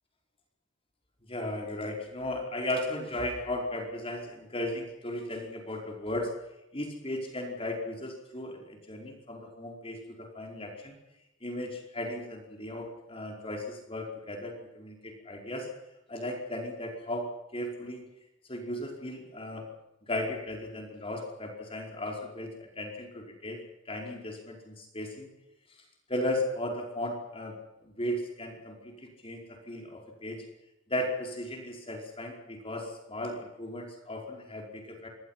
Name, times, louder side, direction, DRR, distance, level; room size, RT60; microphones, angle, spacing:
voice 1, 1.3-6.3 6.7-10.9 11.4-15.7 16.1-18.0 18.5-19.6 20.1-23.6 23.9-25.3 26.1-27.5 28.0-29.0 29.2-30.4 30.9-35.1, left 1 dB, 25° left, 2 dB, 4.8 m, -36 dB
26.0 x 22.5 x 5.8 m, 0.90 s
head